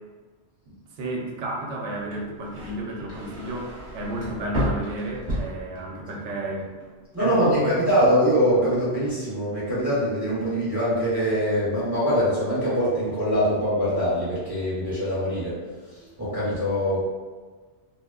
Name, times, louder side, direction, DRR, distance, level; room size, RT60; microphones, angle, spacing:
voice 1, 0.7-6.7 7.2-7.8, right 1 dB, 90° right, -1 dB, 0.9 m, -32 dB
sound 1, 2.0-6.3 6.6-7.1, equal, 45° right, 0.9 m, -32 dB
voice 2, 7.1-15.6 15.9-17.0, equal, 15° right, -11 dB, 1.0 m, -23 dB
3.0 x 2.0 x 2.3 m, 1.4 s
omnidirectional pair, 1.2 m